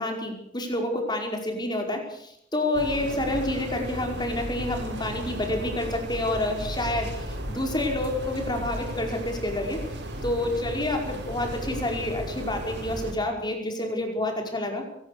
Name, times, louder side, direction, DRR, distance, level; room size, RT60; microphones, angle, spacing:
voice 1, 0.0-9.8 10.2-14.9, left 1 dB, 25° left, 3 dB, 5.2 m, -28 dB
sound 1, 2.7-13.1, right 1 dB, 70° right, 6.1 m, -35 dB
23.5 x 18.5 x 6.8 m, 0.76 s
head